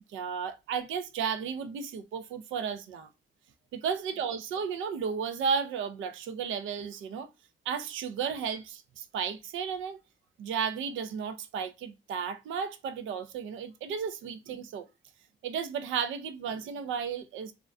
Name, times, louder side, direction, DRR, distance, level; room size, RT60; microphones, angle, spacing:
voice 1, 0.1-3.1 3.7-7.3 7.7-10.0 10.4-14.9 15.4-17.5, right 6 dB, 80° right, 0.5 m, -33 dB
2.4 x 2.2 x 2.4 m
cardioid pair, 90°, 20 cm